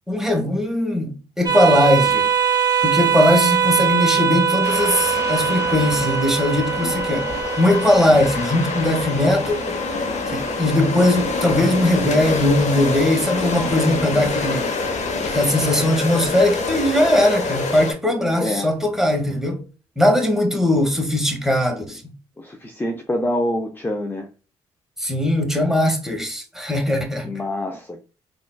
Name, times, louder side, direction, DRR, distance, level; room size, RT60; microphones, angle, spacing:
voice 1, 0.1-2.3 2.8-9.8 10.3-14.7 15.2-19.6 20.0-22.1 25.0-27.3, left 1 dB, 5° right, 1.1 m, -20 dB
sound 1, 1.4-10.4, right 7 dB, 30° right, 1.5 m, -22 dB
sound 2, 4.6-17.9, left 3 dB, 55° left, 0.9 m, -26 dB
voice 2, 22.4-24.3 27.2-28.0, left 1 dB, 15° left, 0.6 m, -26 dB
3.7 x 2.4 x 2.2 m
hypercardioid pair, 50°, 14 cm